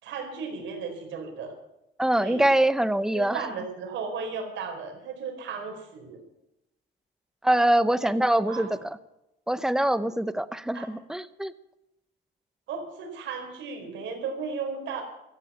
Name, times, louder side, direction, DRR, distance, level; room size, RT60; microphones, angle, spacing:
voice 1, 0.0-1.5 2.2-2.5 3.1-6.2 8.0-8.1 8.5-8.7 10.7-10.9 12.7-15.0, right 5 dB, 85° right, 4 dB, 4.3 m, -35 dB
voice 2, 2.0-3.4 7.4-9.0 9.5-11.5, right 1 dB, 5° right, 14 dB, 0.7 m, -24 dB
16.5 x 14.0 x 5.6 m, 0.91 s
cardioid pair, 120°, 19 cm